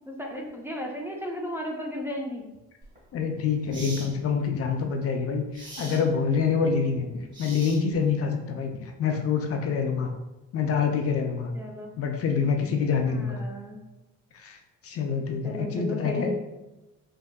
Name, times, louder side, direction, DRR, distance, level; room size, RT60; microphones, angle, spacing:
voice 1, 0.1-2.4 11.5-11.9 13.1-13.8 15.4-16.3, equal, 10° right, -1 dB, 0.4 m, -34 dB
sound 1, 2.8-3.0 3.7-4.1 5.5-6.0 7.3-8.1, right 1 dB, 40° right, 1.4 m, -41 dB
voice 2, 3.1-7.1 7.4-10.1 10.5-11.5 12.0-13.4 14.3-16.3, left 6 dB, 50° left, 4 dB, 0.4 m, -26 dB
3.5 x 2.6 x 2.2 m, 0.99 s
cardioid pair, 90°, 30 cm